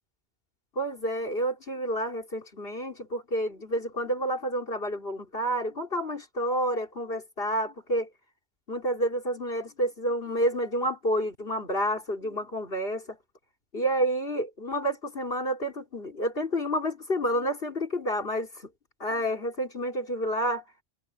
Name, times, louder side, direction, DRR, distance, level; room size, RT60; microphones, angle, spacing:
voice 1, 0.8-8.1 8.7-13.2 13.7-18.7 19.0-20.6, equal, 65° left, 4.1 m, -29 dB
omnidirectional pair, 1.1 m